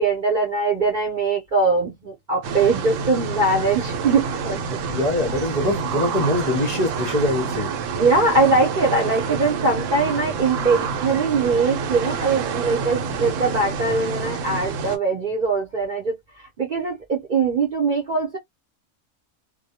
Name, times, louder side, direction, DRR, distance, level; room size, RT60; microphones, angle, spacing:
voice 1, 0.0-4.8 8.0-16.2 16.6-18.4, right 3 dB, 45° right, 0.8 m, -21 dB
sound 1, 2.4-15.0, right 5 dB, 80° right, 0.9 m, -28 dB
voice 2, 4.9-7.7, left 1 dB, 40° left, 0.6 m, -23 dB
2.2 x 2.1 x 2.7 m
omnidirectional pair, 1.3 m